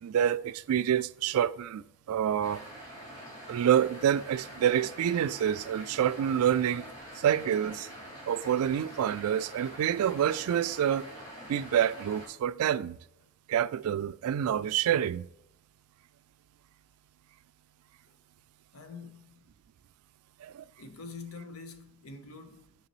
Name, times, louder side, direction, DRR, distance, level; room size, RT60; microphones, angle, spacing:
voice 1, 0.0-2.6 3.5-7.9 8.3-11.1 11.5-13.0 13.5-15.3 20.4-20.6, right 9 dB, 85° right, 0.3 m, -27 dB
sound 1, 2.4-12.3, equal, 20° left, 2.7 m, -46 dB
voice 2, 18.7-19.5 20.8-22.8, left 4 dB, 80° left, 0.9 m, -46 dB
6.7 x 6.6 x 3.0 m
head